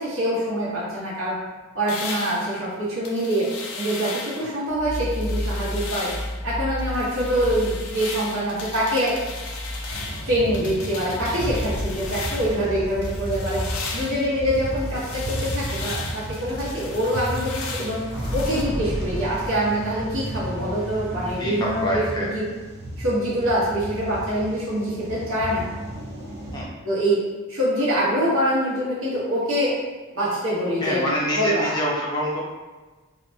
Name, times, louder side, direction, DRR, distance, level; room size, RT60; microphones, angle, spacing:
voice 1, 0.0-1.4 1.7-6.1 6.4-9.2 10.3-13.6 13.9-18.0 18.3-22.5 23.0-25.6 26.8-27.2 27.5-29.8 30.1-31.0 31.3-31.7, equal, 75° right, -7 dB, 1.0 m, -25 dB
sound 1, 1.9-4.5 4.9-6.4 6.8-12.7 13.0-18.6, left 4 dB, 85° left, 0.4 m, -36 dB
sound 2, 4.7-22.8, equal, 15° right, 0.9 m, -35 dB
sound 3, 9.9-26.6, equal, 50° right, 0.4 m, -33 dB
voice 2, 21.4-22.3 26.5-26.7 30.8-32.4, equal, 20° left, -5 dB, 0.4 m, -26 dB
2.7 x 2.2 x 2.7 m, 1.3 s
head